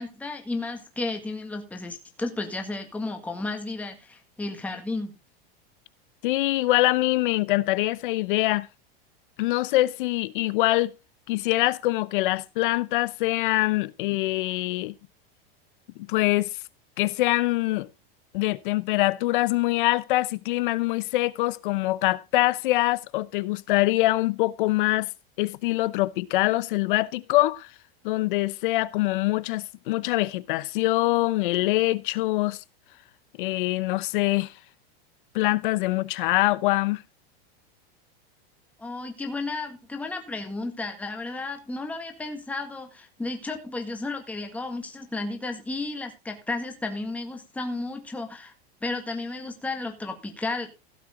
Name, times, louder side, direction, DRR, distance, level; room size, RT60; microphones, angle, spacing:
voice 1, 0.0-5.1 38.8-48.5 48.8-50.7, left 3 dB, 5° left, 1.7 m, -33 dB
voice 2, 6.2-8.7 9.4-10.9 11.3-14.9 16.0-16.6 17.0-17.9 18.3-25.1 25.4-27.7 28.0-32.6 33.4-34.5 35.3-37.0, left 18 dB, 55° left, 0.8 m, -24 dB
16.5 x 7.6 x 3.8 m
supercardioid pair, 170°, 30 cm